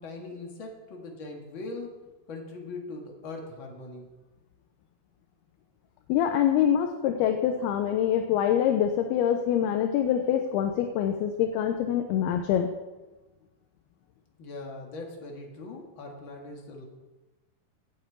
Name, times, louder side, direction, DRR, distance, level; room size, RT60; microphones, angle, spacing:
voice 1, 0.0-2.0 2.3-4.1 14.4-16.8, left 3 dB, 45° left, 1 dB, 1.8 m, -40 dB
voice 2, 6.1-12.7, left 9 dB, 80° left, 5 dB, 2.7 m, -25 dB
9.0 x 8.5 x 8.2 m, 1.1 s
omnidirectional pair, 4.5 m